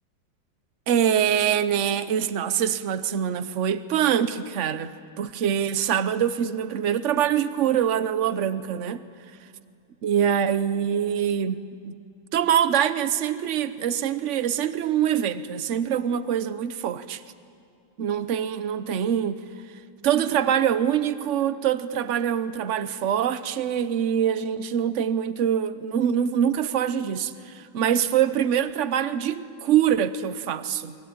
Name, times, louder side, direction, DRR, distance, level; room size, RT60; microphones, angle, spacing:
voice 1, 0.9-9.0 10.0-12.0 12.3-17.2 18.0-19.4 20.0-30.9, right 9 dB, 50° right, 1.0 m, -24 dB
29.0 x 22.5 x 8.7 m
omnidirectional pair, 2.0 m